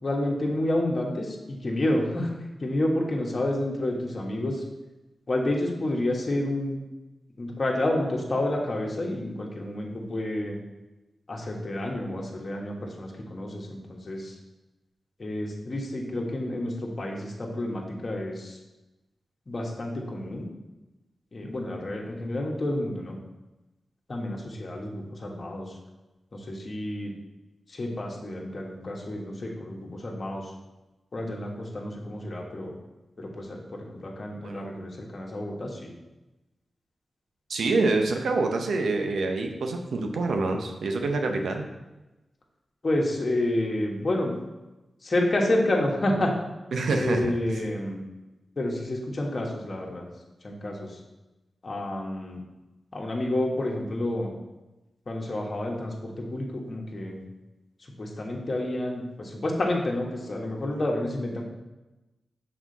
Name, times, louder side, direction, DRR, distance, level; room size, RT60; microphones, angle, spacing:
voice 1, 0.0-2.3 2.6-4.6 5.3-6.8 7.4-10.6 11.3-14.4 15.2-18.6 19.5-20.5 21.3-23.2 24.1-25.7 26.3-27.1 27.7-30.5 31.1-32.7 33.2-35.9 42.8-44.3 45.0-46.3 47.0-48.0 48.6-50.0 50.4-51.0 51.6-52.4 52.9-54.3 55.1-57.2 58.0-61.4, left 1 dB, 50° left, -1 dB, 1.3 m, -29 dB
voice 2, 37.5-41.7 46.7-47.2, right 3 dB, 85° right, 4 dB, 0.7 m, -26 dB
6.1 x 4.3 x 4.0 m, 1.0 s
cardioid pair, 45°, 0 cm